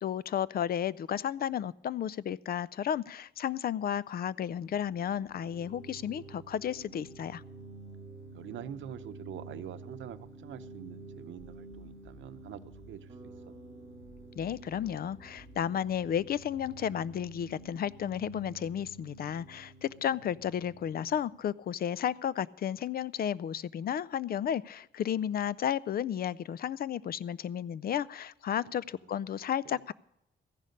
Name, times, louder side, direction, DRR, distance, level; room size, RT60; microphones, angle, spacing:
voice 1, 0.0-7.4 14.4-29.9, left 9 dB, 50° left, 21 dB, 0.4 m, -33 dB
sound 1, 4.5-22.1, right 2 dB, 85° left, 5.1 m, -50 dB
voice 2, 8.3-13.1 13.5-13.6 28.7-28.8 29.6-29.8, right 10 dB, 80° right, 11 dB, 0.7 m, -45 dB
sound 2, 11.4-16.8, left 1 dB, 30° left, 1.6 m, -57 dB
Bass guitar, 13.1-17.2, right 3 dB, 30° right, 2.0 m, -55 dB
14.5 x 11.0 x 5.2 m, 0.83 s
wide cardioid pair, 130°, 19 cm